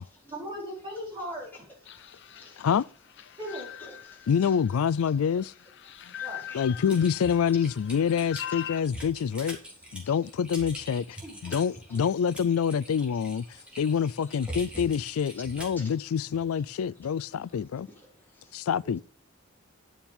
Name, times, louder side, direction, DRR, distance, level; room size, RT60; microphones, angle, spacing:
voice 1, 0.3-1.7 3.4-3.7 6.2-6.5 11.2-11.4 18.8-18.9, equal, 25° right, 4.5 m, -38 dB
sound 1, 1.9-8.8, left 10 dB, 60° left, 0.7 m, -42 dB
voice 2, 1.9-2.7 3.8-4.5 5.9-7.4 8.5-8.6 10.0-10.2 11.4-12.0 13.6-13.8 14.2-14.4 15.4-15.5 15.8-15.9 17.3-17.4 17.7-18.6, left 1 dB, 10° left, 4.3 m, -51 dB
voice 3, 4.3-5.5 6.5-9.6 9.9-11.1 11.4-13.4 13.8-17.9 18.5-19.0, left 7 dB, 90° left, 0.4 m, -26 dB
Typing, 6.9-15.8, equal, 5° right, 3.6 m, -43 dB
11.0 x 7.2 x 5.3 m
head